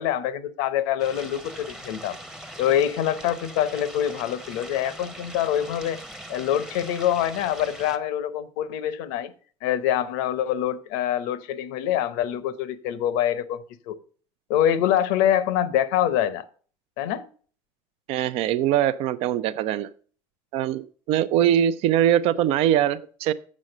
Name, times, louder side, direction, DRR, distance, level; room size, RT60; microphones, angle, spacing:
voice 1, 0.0-2.2 2.6-6.0 6.3-9.3 9.6-13.6 13.9-14.0 14.5-16.5 17.0-17.3, left 11 dB, 85° left, 15 dB, 0.8 m, -25 dB
sound 1, 1.0-8.0, right 1 dB, 5° right, 0.8 m, -41 dB
voice 2, 18.1-19.9 20.5-23.3, right 11 dB, 65° right, 15 dB, 0.5 m, -22 dB
7.3 x 6.3 x 6.4 m, 0.43 s
supercardioid pair, 110°, 11 cm